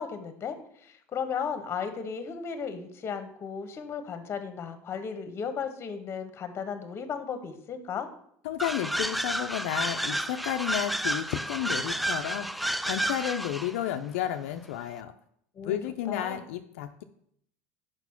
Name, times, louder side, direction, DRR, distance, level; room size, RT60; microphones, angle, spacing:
voice 1, 0.0-8.1 15.5-15.8 16.1-16.4, left 6 dB, 35° left, 9 dB, 1.2 m, -35 dB
voice 2, 8.4-15.1 15.6-17.0, left 11 dB, 80° left, 6 dB, 0.5 m, -32 dB
sound 1, 8.6-13.8, right 1 dB, ahead, 0.3 m, -31 dB
6.0 x 5.2 x 5.7 m, 0.69 s
supercardioid pair, 100°, 7 cm